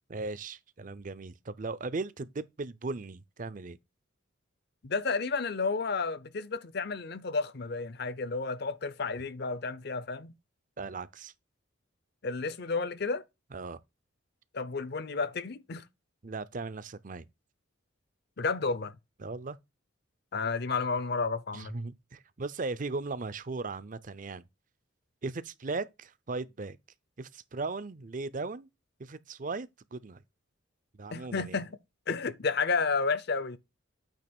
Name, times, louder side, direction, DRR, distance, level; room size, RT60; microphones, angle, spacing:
voice 1, 0.1-3.8 10.8-11.3 13.5-13.8 16.2-17.3 19.2-19.6 21.5-24.4 25.2-26.8 27.2-28.7 29.0-30.2 31.0-31.6, right 3 dB, 40° right, 0.6 m, -37 dB
voice 2, 4.8-10.3 12.2-13.2 14.5-15.8 18.4-18.9 20.3-21.7 31.1-31.8 32.1-33.6, left 4 dB, 55° left, 0.7 m, -31 dB
9.0 x 3.0 x 6.0 m
head